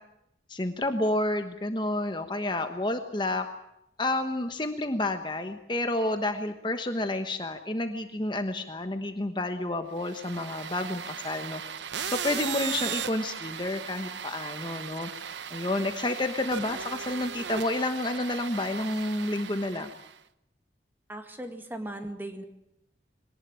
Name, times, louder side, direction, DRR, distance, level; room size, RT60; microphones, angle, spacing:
voice 1, 0.5-3.5 4.0-11.6 12.1-15.1 15.5-19.9, left 2 dB, 25° left, 7 dB, 1.2 m, -30 dB
sound 1, 10.0-20.2, right 7 dB, 80° right, 1.0 m, -37 dB
voice 2, 21.1-22.4, right 1 dB, 10° right, 6 dB, 2.0 m, -38 dB
23.0 x 18.5 x 8.9 m, 0.82 s
head